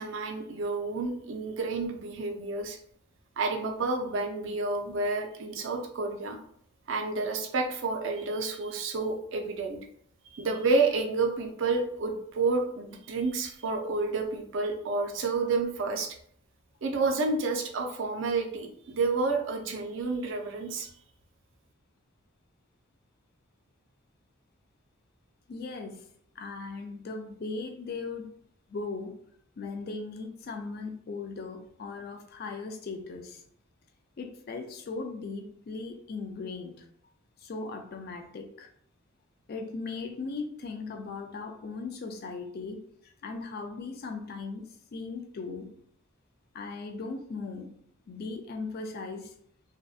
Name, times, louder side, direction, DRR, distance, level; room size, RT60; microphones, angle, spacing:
voice 1, 0.0-2.8 3.4-6.4 6.9-9.8 10.3-16.1 16.8-20.9, right 3 dB, 60° right, 3 dB, 0.4 m, -30 dB
voice 2, 25.5-26.0 26.4-28.3 28.7-29.2 29.6-33.4 34.2-36.9 37.4-38.7 39.5-45.7 46.5-47.7 48.1-49.3, left 4 dB, 45° left, 5 dB, 0.3 m, -38 dB
2.6 x 2.2 x 2.3 m, 0.65 s
head